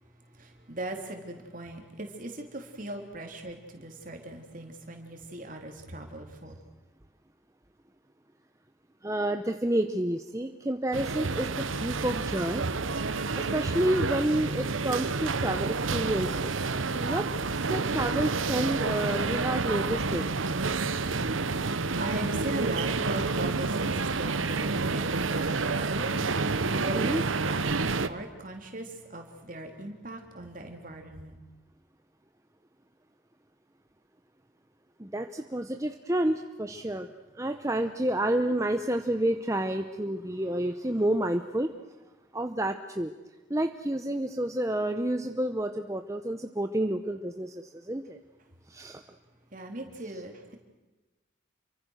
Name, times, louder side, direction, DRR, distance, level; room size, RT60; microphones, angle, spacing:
voice 1, 0.3-6.6 20.9-31.4 49.5-50.6, right 1 dB, 40° right, 3 dB, 3.4 m, -39 dB
voice 2, 9.0-12.6 13.4-16.6 16.9-17.3 17.7-20.2 26.9-27.2 35.0-37.1 37.3-41.7 42.3-43.1 43.5-48.2 48.7-49.0, right 1 dB, 15° right, 6 dB, 0.8 m, -29 dB
sound 1, 10.9-28.1, right 4 dB, 90° right, 1.1 m, -29 dB
28.5 x 24.0 x 6.5 m, 1.1 s
head